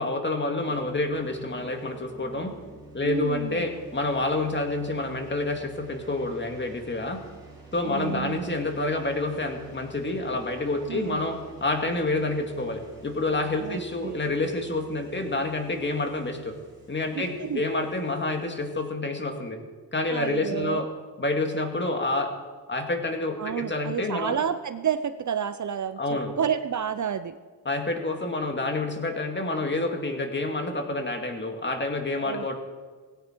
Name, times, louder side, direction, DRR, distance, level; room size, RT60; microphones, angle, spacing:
voice 1, 0.0-2.5 2.9-7.2 7.7-16.5 16.9-19.6 19.9-20.9 21.2-22.4 22.7-24.3 26.0-26.3 27.7-32.5, left 2 dB, 25° left, 4 dB, 2.2 m, -28 dB
sound 1, 0.6-18.8, right 3 dB, 10° right, 4.4 m, -49 dB
voice 2, 3.0-3.7 7.8-8.6 10.9-11.2 13.6-14.2 17.1-17.6 20.1-20.9 23.4-27.4 32.2-32.5, right 8 dB, 45° right, 11 dB, 0.6 m, -30 dB
18.0 x 17.0 x 4.5 m, 1.5 s
wide cardioid pair, 125°, 42 cm